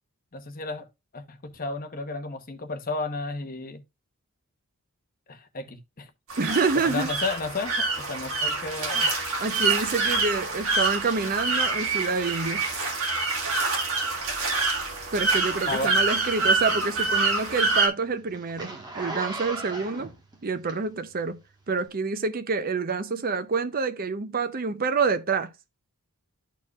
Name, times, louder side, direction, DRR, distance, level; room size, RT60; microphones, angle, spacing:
voice 1, 0.3-0.9 1.1-3.8 5.3-6.1 6.8-9.1 15.7-15.9, left 3 dB, 40° left, 0.9 m, -33 dB
sound 1, 6.3-17.9, right 3 dB, 65° right, 1.8 m, -26 dB
voice 2, 6.4-7.1 9.4-12.7 15.1-20.1 20.4-21.4 21.7-25.5, right 4 dB, 40° right, 0.6 m, -27 dB
Zipper (clothing), 16.4-21.2 21.7-21.9, right 2 dB, 20° right, 1.4 m, -38 dB
12.5 x 4.4 x 2.3 m
head